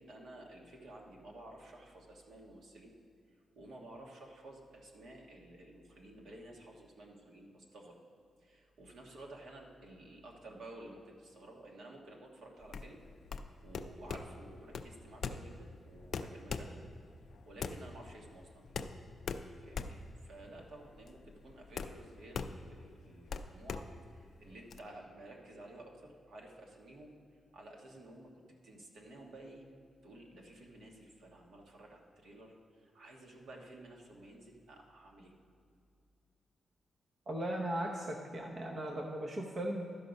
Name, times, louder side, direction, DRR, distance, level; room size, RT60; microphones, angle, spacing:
voice 1, 0.0-2.9 3.5-8.0 8.4-13.0 13.6-16.8 17.4-18.6 19.6-27.1 27.5-28.3 28.6-29.7 30.0-35.3, right 1 dB, 70° right, 0 dB, 1.4 m, -53 dB
sound 1, 12.6-24.8, left 5 dB, 60° left, 0.4 m, -42 dB
voice 2, 37.3-39.9, right 1 dB, 35° right, 1 dB, 0.7 m, -37 dB
12.0 x 5.5 x 5.2 m, 2.3 s
wide cardioid pair, 150°, 0 cm